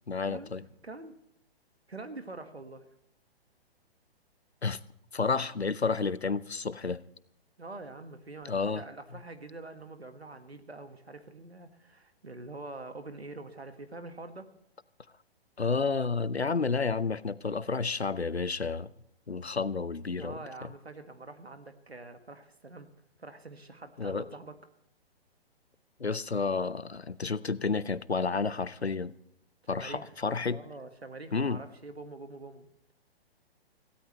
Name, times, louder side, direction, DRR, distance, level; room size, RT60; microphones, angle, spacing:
voice 1, 0.1-0.6 4.6-4.8 5.1-7.0 8.5-8.8 15.6-18.9 19.3-20.4 24.0-24.3 26.0-29.1 29.7-30.6 31.3-31.6, left 4 dB, 85° left, 19 dB, 0.8 m, -30 dB
voice 2, 0.8-1.1 1.9-2.8 7.6-14.5 20.2-22.9 23.2-24.6 29.6-30.2 30.5-32.7, right 2 dB, 80° right, 8 dB, 1.8 m, -45 dB
22.0 x 16.5 x 3.2 m, 0.76 s
figure-of-eight pair, 125°, 31 cm